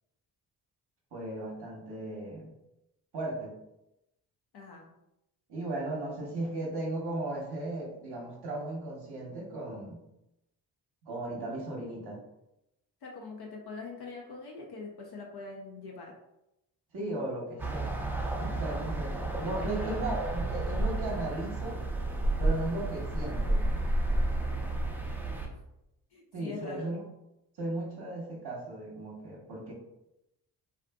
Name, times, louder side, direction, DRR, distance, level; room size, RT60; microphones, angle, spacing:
voice 1, 1.1-2.5 3.1-3.6 5.5-10.0 11.0-12.2 16.9-17.9 18.4-21.8 22.4-23.7 26.3-27.0 27.6-29.7, right 2 dB, 50° right, -3 dB, 0.9 m, -36 dB
voice 2, 4.5-4.9 13.0-16.1 19.6-20.0 25.2-25.5 26.1-27.0, left 4 dB, 50° left, -1 dB, 0.6 m, -43 dB
sound 1, 17.6-25.5, right 1 dB, 5° right, 0.6 m, -31 dB
2.6 x 2.4 x 2.2 m, 0.88 s
hypercardioid pair, 45°, 49 cm